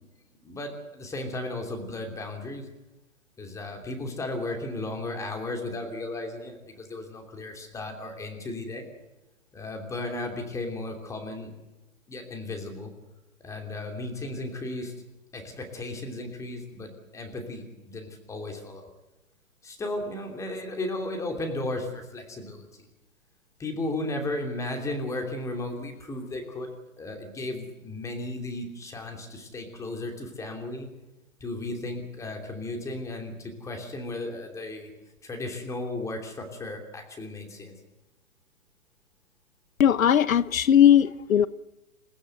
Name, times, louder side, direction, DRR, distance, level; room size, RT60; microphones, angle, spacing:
voice 1, 0.4-2.7 3.4-8.9 9.5-11.5 12.1-12.9 13.4-14.9 15.3-18.9 19.6-22.7 23.6-26.7 27.0-30.9 31.4-34.9 35.2-37.7 41.0-41.1, left 2 dB, 5° left, 3.0 m, -35 dB
voice 2, 39.8-41.5, left 9 dB, 75° left, 0.9 m, -18 dB
28.0 x 15.5 x 7.9 m
hypercardioid pair, 155°, 41 cm